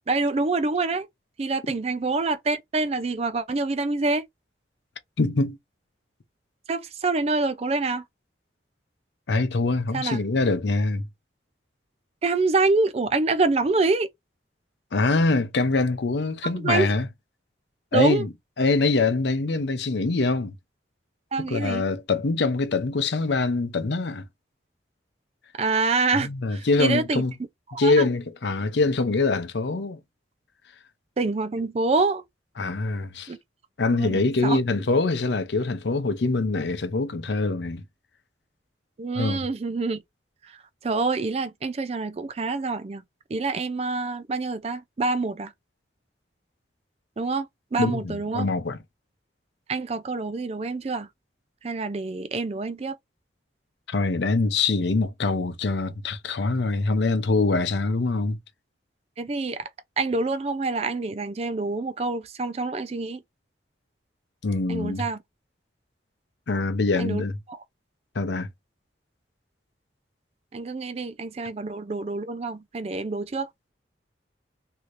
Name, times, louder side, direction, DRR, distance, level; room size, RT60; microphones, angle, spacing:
voice 1, 0.1-1.1 1.4-4.2 6.7-8.0 9.9-10.2 12.2-14.1 16.5-16.9 17.9-18.2 21.3-21.8 25.6-27.2 27.7-28.1 31.2-32.2 33.3-33.4 33.9-34.6 39.0-40.0 40.8-43.0 43.3-45.5 47.2-48.5 49.7-51.1 51.6-53.0 59.2-59.7 60.0-63.2 64.7-65.2 67.0-67.2 67.5-67.6 70.5-73.7, right 3 dB, 35° right, 0.4 m, -26 dB
voice 2, 5.2-5.6 9.3-11.1 14.9-17.1 17.9-18.3 18.6-20.5 21.5-24.3 26.1-27.3 27.8-30.0 32.6-33.3 33.8-37.8 39.2-39.5 47.8-48.8 53.9-58.4 64.4-65.0 66.5-67.4 68.1-68.5, left 3 dB, 70° left, 0.6 m, -24 dB
3.0 x 2.8 x 2.5 m
head